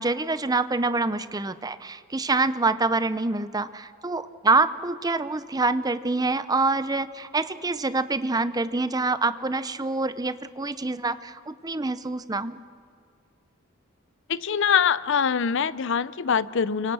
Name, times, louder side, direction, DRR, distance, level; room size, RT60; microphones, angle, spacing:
voice 1, 0.0-12.6, right 3 dB, 15° right, 13 dB, 0.6 m, -26 dB
voice 2, 14.3-16.9, left 7 dB, 55° left, 17 dB, 0.6 m, -23 dB
29.5 x 24.0 x 6.2 m, 2.3 s
head